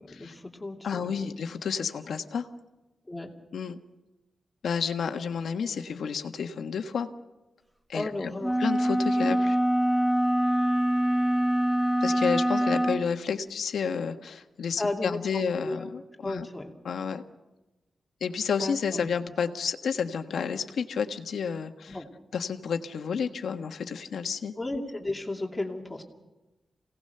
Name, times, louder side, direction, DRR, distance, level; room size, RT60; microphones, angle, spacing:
voice 1, 0.0-1.3 3.0-3.3 7.9-8.6 14.8-15.9 16.2-16.7 18.6-19.1 21.9-22.1 24.6-26.0, left 2 dB, 15° left, 2 dB, 2.6 m, -34 dB
voice 2, 0.8-2.5 3.5-3.8 4.6-7.1 7.9-8.1 8.6-9.6 12.0-16.5 16.8-17.2 18.2-22.0 22.3-24.5, left 6 dB, 85° left, 6 dB, 1.5 m, -30 dB
sound 1, 8.4-13.0, right 1 dB, 5° right, 1.1 m, -24 dB
28.0 x 18.0 x 6.8 m, 1.1 s
wide cardioid pair, 155°, 0 cm